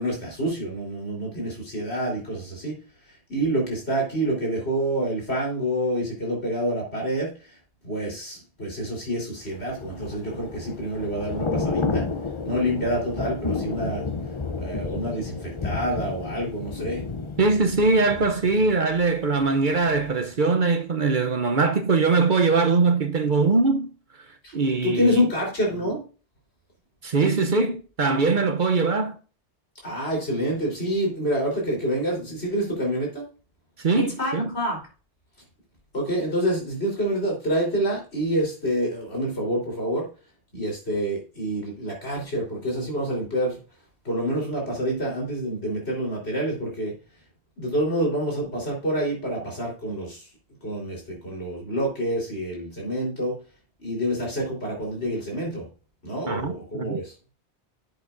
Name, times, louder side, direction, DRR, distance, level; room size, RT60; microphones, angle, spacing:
voice 1, 0.0-2.8 3.3-7.6 7.8-12.1 12.4-14.0 14.6-17.0 24.4-24.6 24.8-26.0 29.8-33.2 34.0-34.8 35.9-40.1 40.5-43.6 44.0-46.9 47.6-50.3 50.6-53.4 53.8-55.7 56.0-57.1, equal, 70° left, 4.1 m, -27 dB
Thunder / Rain, 9.5-19.5 19.8-20.1, left 4 dB, 35° left, 0.6 m, -31 dB
voice 2, 17.4-23.9 24.5-25.3 27.0-29.2 33.8-34.5 56.3-57.0, right 3 dB, 50° right, 0.8 m, -22 dB
10.5 x 7.9 x 2.6 m
omnidirectional pair, 1.1 m